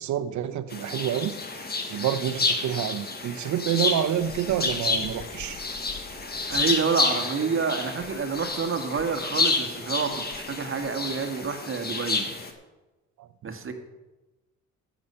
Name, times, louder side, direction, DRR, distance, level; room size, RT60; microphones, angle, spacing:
voice 1, 0.0-5.6 13.2-13.3, right 10 dB, 70° right, 11 dB, 0.9 m, -28 dB
sound 1, 0.7-12.5, left 3 dB, 30° left, 1.6 m, -30 dB
voice 2, 6.5-12.3 13.4-13.7, right 5 dB, 45° right, 6 dB, 1.6 m, -28 dB
14.0 x 7.3 x 5.6 m, 1.1 s
cardioid pair, 90°, 30 cm